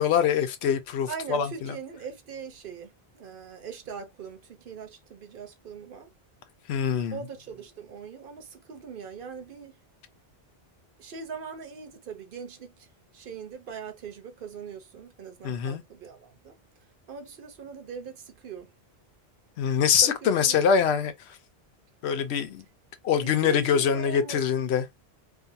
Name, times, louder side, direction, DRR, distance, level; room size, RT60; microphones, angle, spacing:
voice 1, 0.0-1.7 6.7-7.2 15.4-15.8 19.6-21.1 22.0-22.6 23.0-24.8, left 7 dB, 85° left, 0.9 m, -24 dB
voice 2, 1.1-6.1 7.1-9.8 11.0-18.7 20.0-20.6 23.2-24.4, right 6 dB, 60° right, 0.8 m, -41 dB
2.5 x 2.4 x 2.5 m
omnidirectional pair, 1.1 m